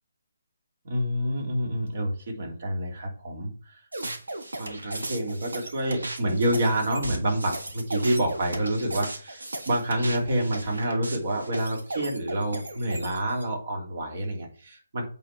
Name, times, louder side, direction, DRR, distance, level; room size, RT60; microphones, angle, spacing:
voice 1, 0.8-3.8 4.6-15.1, right 1 dB, 55° right, 1 dB, 3.1 m, -28 dB
sound 1, 3.9-13.4, right 1 dB, 80° right, 1.5 m, -36 dB
8.3 x 4.6 x 4.9 m, 0.42 s
figure-of-eight pair, 145°, 0 cm